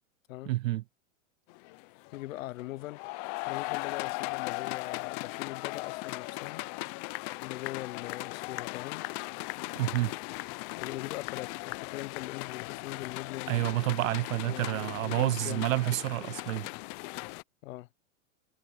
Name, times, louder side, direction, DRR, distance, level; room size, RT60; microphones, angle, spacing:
voice 1, 0.5-0.8 9.8-10.1 13.5-16.7, right 17 dB, 85° right, 0.7 m, -29 dB
sound 1, 1.5-17.4, left 25 dB, 35° left, 0.5 m, -38 dB
voice 2, 2.1-3.0 3.5-6.7 7.4-9.1 10.8-13.8 14.4-15.7 17.6-17.9, left 17 dB, 85° left, 0.7 m, -41 dB
supercardioid pair, 145°, 39 cm